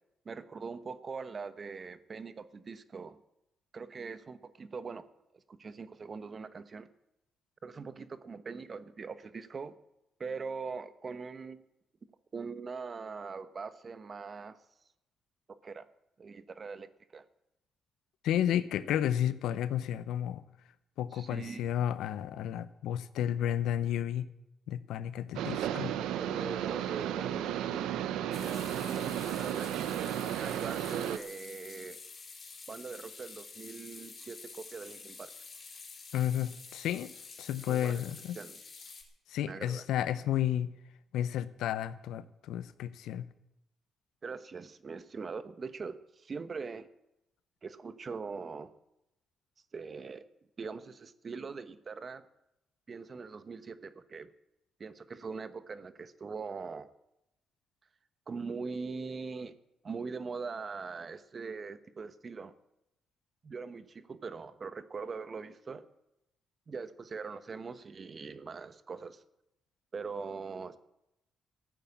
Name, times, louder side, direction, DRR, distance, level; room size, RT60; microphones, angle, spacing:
voice 1, 0.2-3.2 3.7-5.1 5.3-6.9 7.6-9.7 10.2-11.6 12.3-14.6 15.5-15.9 16.2-17.2 21.1-21.6 26.0-29.7 30.0-32.0 32.7-35.3 37.7-38.0 38.3-38.6 39.5-39.8 44.2-46.9 47.6-48.7 49.7-50.2 50.6-52.2 52.9-54.3 54.8-56.9 58.3-59.5 59.8-62.5 63.4-65.9 66.7-69.2 69.9-70.8, right 5 dB, 40° right, 13 dB, 1.0 m, -42 dB
voice 2, 18.2-20.4 21.0-24.3 24.7-25.9 36.1-37.1 37.4-38.4 39.3-40.7 41.1-43.3, left 10 dB, 85° left, 15 dB, 0.8 m, -32 dB
sound 1, 25.3-31.2, right 11 dB, 90° right, 0.7 m, -34 dB
sound 2, 28.3-39.0, left 4 dB, 45° left, 4.4 m, -49 dB
14.0 x 9.2 x 8.6 m, 0.86 s
cardioid pair, 90°, 0 cm